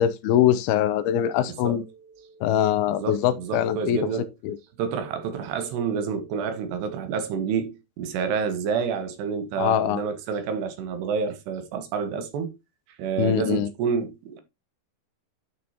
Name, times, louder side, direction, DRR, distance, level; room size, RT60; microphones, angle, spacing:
voice 1, 0.0-1.8 2.4-4.0 4.5-4.6 9.6-10.0 13.2-13.7, left 10 dB, 80° left, 2.4 m, -22 dB
voice 2, 1.5-2.6 2.9-4.3 4.8-12.5 13.0-14.4, right 6 dB, 90° right, 3.5 m, -29 dB
10.5 x 6.4 x 2.9 m
omnidirectional pair, 4.7 m